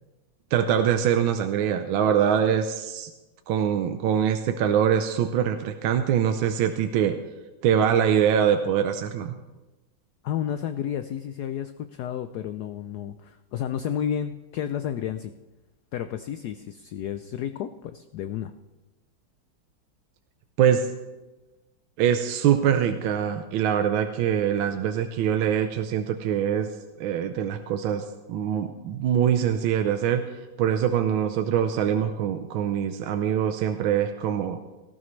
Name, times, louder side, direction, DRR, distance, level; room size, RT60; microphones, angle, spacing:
voice 1, 0.5-3.1 3.5-7.2 7.6-9.4 20.6-20.9 22.0-26.7 27.0-30.2 30.6-34.6, right 9 dB, 80° right, 7 dB, 1.5 m, -23 dB
voice 2, 10.2-15.3 15.9-18.5, left 9 dB, 75° left, 10 dB, 0.9 m, -31 dB
18.0 x 14.5 x 3.2 m, 1.1 s
omnidirectional pair, 2.2 m